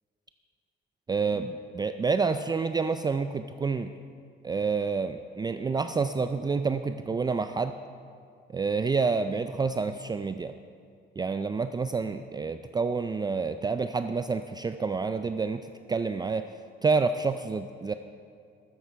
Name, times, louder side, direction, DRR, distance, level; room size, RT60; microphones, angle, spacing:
voice 1, 1.1-3.9 4.4-7.8 8.5-10.5 11.2-16.5 16.8-17.9, right 4 dB, 20° right, 9 dB, 0.3 m, -28 dB
12.5 x 8.5 x 4.6 m, 2.3 s
cardioid pair, 90°, 20 cm